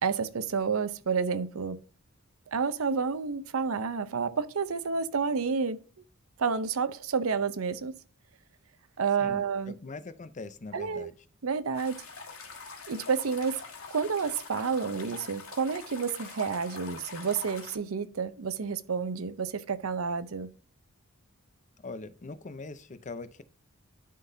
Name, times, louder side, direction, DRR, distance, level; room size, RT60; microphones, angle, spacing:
voice 1, 0.0-1.8 2.5-5.8 6.4-7.9 9.0-9.7 10.7-11.1 11.4-12.0 12.9-13.6 13.9-20.5, right 5 dB, 80° right, 0.6 m, -30 dB
voice 2, 9.2-11.1 21.8-23.4, left 3 dB, 35° left, 0.6 m, -42 dB
sound 1, 11.7-17.8, left 5 dB, 85° left, 1.6 m, -44 dB
11.5 x 3.8 x 2.7 m
head